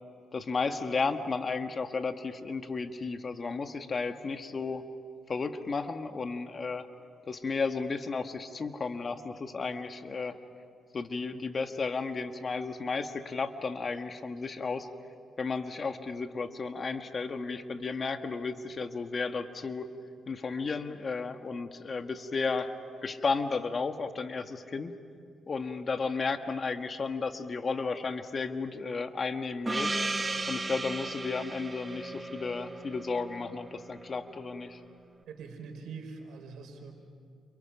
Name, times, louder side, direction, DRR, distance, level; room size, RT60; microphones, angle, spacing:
voice 1, 0.3-4.8 5.3-6.9 7.3-10.4 10.9-14.9 15.4-19.9 20.3-22.7 23.0-24.9 25.5-29.9 30.5-34.8, left 4 dB, 40° left, 7 dB, 1.5 m, -33 dB
Gong, 29.7-34.0, right 2 dB, 25° right, 1.6 m, -35 dB
voice 2, 35.3-36.9, right 5 dB, 80° right, 4 dB, 4.2 m, -43 dB
29.5 x 28.5 x 5.8 m, 2.3 s
cardioid pair, 75°, 0 cm